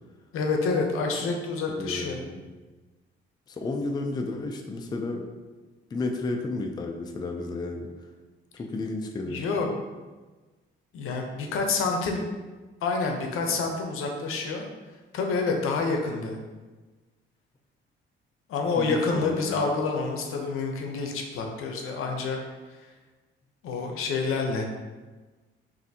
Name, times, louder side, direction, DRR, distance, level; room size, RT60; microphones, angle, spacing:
voice 1, 0.3-2.2 9.3-9.8 10.9-12.3 12.8-14.6 15.1-16.4 18.5-22.4 23.6-24.7, left 4 dB, 80° left, 2 dB, 0.7 m, -28 dB
voice 2, 1.7-2.4 3.5-5.3 5.9-7.9 8.6-9.4 18.8-19.7, left 2 dB, 20° left, 3 dB, 0.3 m, -32 dB
5.6 x 2.6 x 2.7 m, 1.3 s
cardioid pair, 120°, 21 cm